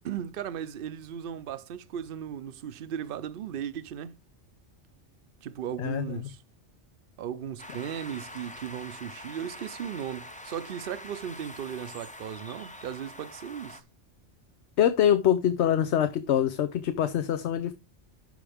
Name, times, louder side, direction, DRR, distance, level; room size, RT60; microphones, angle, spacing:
voice 1, 0.0-4.1 5.4-6.4 7.2-13.8, right 9 dB, 55° right, 0.8 m, -36 dB
voice 2, 5.8-6.3 14.8-17.7, left 10 dB, 70° left, 0.9 m, -24 dB
sound 1, 7.6-13.8, left 1 dB, 10° left, 0.6 m, -45 dB
12.5 x 4.8 x 3.4 m
omnidirectional pair, 1.2 m